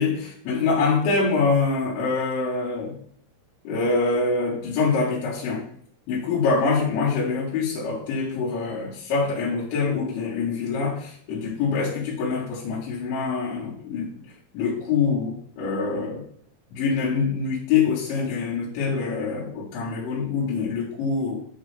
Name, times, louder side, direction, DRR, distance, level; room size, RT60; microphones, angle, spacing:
voice 1, 0.0-3.0 3.6-5.6 6.1-14.2 14.5-16.3 16.7-21.4, left 4 dB, 70° left, -11 dB, 4.3 m, -25 dB
11.0 x 3.7 x 3.5 m, 0.64 s
omnidirectional pair, 5.4 m